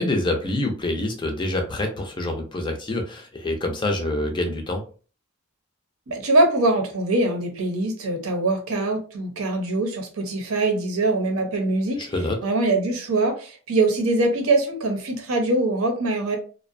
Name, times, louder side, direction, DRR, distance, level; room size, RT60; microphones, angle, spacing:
voice 1, 0.0-4.8 12.0-12.4, left 1 dB, 20° left, 4 dB, 0.4 m, -26 dB
voice 2, 6.1-12.1 12.4-16.4, right 2 dB, 80° right, 4 dB, 0.7 m, -23 dB
2.6 x 2.1 x 2.5 m, 0.39 s
head